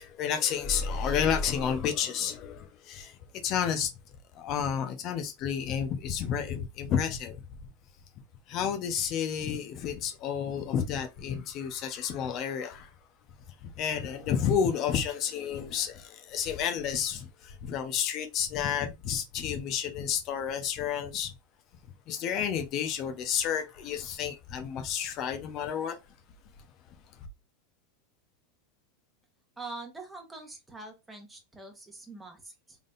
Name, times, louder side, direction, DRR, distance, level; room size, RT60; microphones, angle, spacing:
voice 1, 0.0-3.2 3.4-3.9 4.3-7.4 8.5-12.9 13.6-21.3 22.1-26.0, left 8 dB, 45° left, 0.9 m, -31 dB
sound 1, 0.6-1.9, left 1 dB, 25° left, 2.1 m, -34 dB
voice 2, 29.6-32.8, right 3 dB, 10° right, 1.4 m, -44 dB
3.8 x 3.6 x 2.5 m
supercardioid pair, 125°, 0 cm